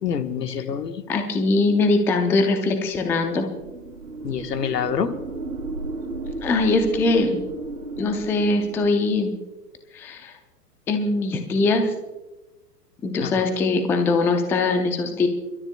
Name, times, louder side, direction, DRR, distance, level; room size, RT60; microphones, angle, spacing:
voice 1, 0.0-1.0 4.2-5.1 13.2-13.5, left 7 dB, 80° left, 8 dB, 1.4 m, -26 dB
voice 2, 1.1-3.5 6.4-7.4 8.0-9.3 9.9-10.3 10.9-11.9 13.0-15.3, left 3 dB, 5° left, 6 dB, 0.4 m, -21 dB
sound 1, 3.2-9.3, right 2 dB, 85° right, 2.4 m, -34 dB
29.5 x 13.0 x 2.2 m, 1.1 s
hypercardioid pair, 120°, 48 cm